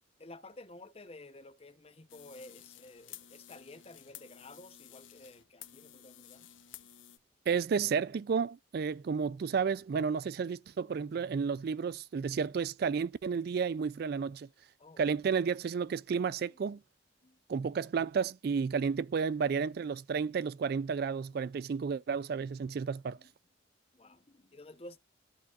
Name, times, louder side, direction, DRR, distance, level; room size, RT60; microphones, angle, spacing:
voice 1, 0.2-6.5 14.8-15.0 16.4-16.7 17.2-17.4 22.7-23.3 23.9-25.0, left 2 dB, 30° left, 0.8 m, -53 dB
sound 1, 2.1-7.2, left 11 dB, 85° left, 0.9 m, -53 dB
voice 2, 7.5-14.5 15.0-16.8 17.5-23.2, right 6 dB, 55° right, 0.3 m, -32 dB
14.0 x 4.7 x 2.4 m
head